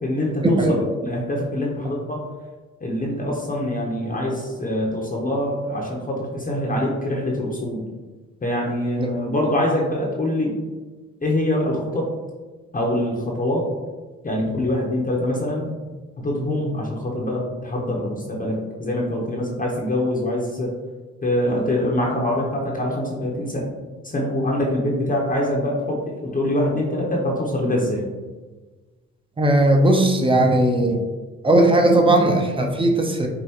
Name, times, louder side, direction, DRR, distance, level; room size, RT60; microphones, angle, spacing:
voice 1, 0.0-2.2 2.8-7.8 8.4-10.6 11.2-12.1 12.7-13.7 14.2-15.7 16.2-20.7 21.2-23.6 24.0-28.1, left 1 dB, 25° left, -2 dB, 0.8 m, -24 dB
voice 2, 29.4-31.0 31.4-33.3, right 1 dB, 15° right, 2 dB, 0.7 m, -17 dB
5.4 x 2.5 x 2.9 m, 1.3 s
cardioid pair, 90°, 30 cm